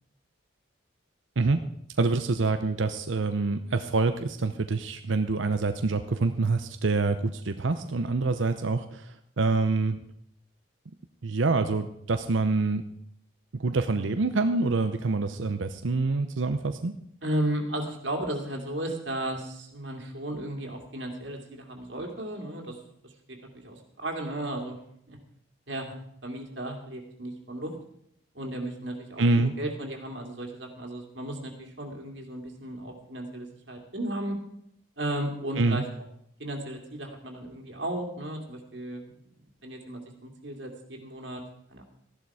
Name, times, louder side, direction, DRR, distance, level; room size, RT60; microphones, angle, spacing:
voice 1, 2.0-9.1 9.4-10.0 11.2-12.8 13.6-16.9 29.2-29.5 35.6-35.8, right 3 dB, 80° right, 8 dB, 0.7 m, -26 dB
voice 2, 17.2-22.8 23.0-24.8 25.1-25.2 25.7-26.0 26.2-27.7 28.3-34.4 35.0-35.8 36.4-41.4 41.7-41.8, right 1 dB, 65° right, 2 dB, 2.4 m, -35 dB
14.5 x 11.5 x 4.8 m, 0.72 s
head